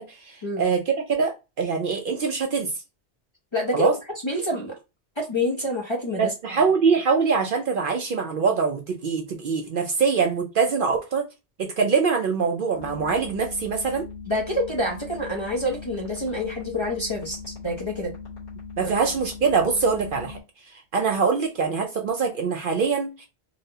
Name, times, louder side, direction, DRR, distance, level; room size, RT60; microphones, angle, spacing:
voice 1, 0.0-2.7 3.7-3.9 6.2-11.3 11.6-14.0 18.8-20.4 20.7-23.3, right 5 dB, 60° right, 0.6 m, -24 dB
voice 2, 3.5-3.9 4.2-4.7 5.2-6.3 14.3-18.1, left 1 dB, 35° left, 0.5 m, -27 dB
sound 1, 12.7-20.4, left 4 dB, 75° left, 1.7 m, -39 dB
4.0 x 2.0 x 2.7 m
omnidirectional pair, 1.2 m